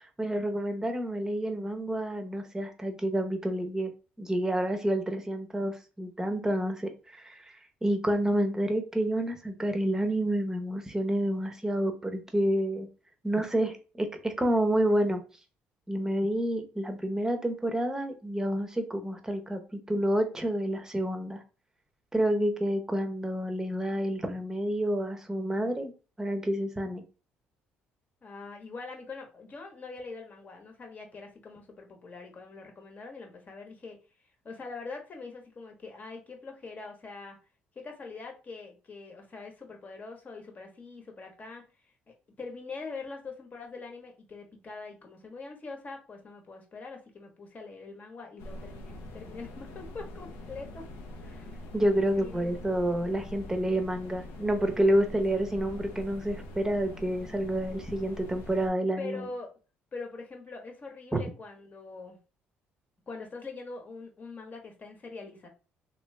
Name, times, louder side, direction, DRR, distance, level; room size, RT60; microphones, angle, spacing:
voice 1, 0.0-3.9 4.2-12.9 13.2-15.2 15.9-21.4 22.1-25.9 26.2-27.0 51.7-59.3 61.1-61.2, right 1 dB, 10° right, 6 dB, 0.8 m, -29 dB
voice 2, 28.2-34.0 34.4-37.4 37.7-41.6 42.1-50.8 51.2-51.5 52.1-52.5 59.0-59.5 59.9-62.2 63.1-65.5, left 4 dB, 40° left, 3 dB, 1.1 m, -43 dB
sound 1, 48.4-58.7, left 1 dB, 85° left, 0.8 m, -44 dB
3.0 x 2.7 x 3.2 m, 0.34 s
supercardioid pair, 80°, 4 cm